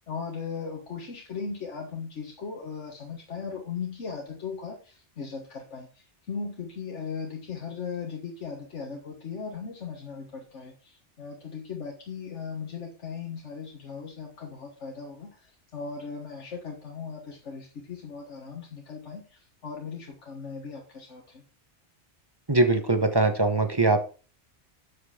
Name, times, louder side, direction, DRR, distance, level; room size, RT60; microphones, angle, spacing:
voice 1, 0.1-21.4, left 5 dB, 90° left, 1 dB, 1.7 m, -38 dB
voice 2, 22.5-24.0, right 2 dB, 20° right, 7 dB, 1.1 m, -22 dB
8.4 x 7.5 x 4.9 m, 0.37 s
omnidirectional pair, 1.2 m